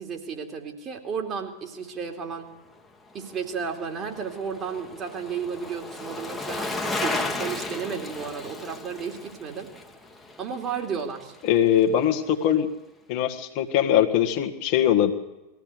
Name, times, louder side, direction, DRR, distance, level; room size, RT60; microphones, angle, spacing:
voice 1, 0.0-2.5 3.1-9.7 10.4-11.3, right 6 dB, 30° right, 3 dB, 3.0 m, -33 dB
Bicycle, 3.1-11.5 11.8-11.9, left 2 dB, 10° left, 1.8 m, -35 dB
voice 2, 11.4-12.7 13.1-15.1, left 10 dB, 45° left, 4 dB, 1.7 m, -21 dB
21.5 x 15.0 x 8.2 m, 0.98 s
figure-of-eight pair, 90°, 0 cm